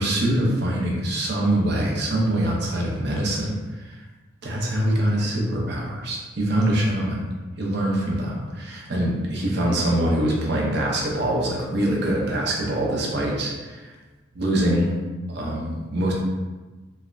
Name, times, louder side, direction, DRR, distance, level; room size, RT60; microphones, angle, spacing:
voice 1, 0.0-4.0 4.4-7.3 7.6-13.9 14.3-14.9 15.3-16.1, right 1 dB, 55° right, -2 dB, 0.6 m, -24 dB
3.1 x 2.0 x 2.4 m, 1.2 s
head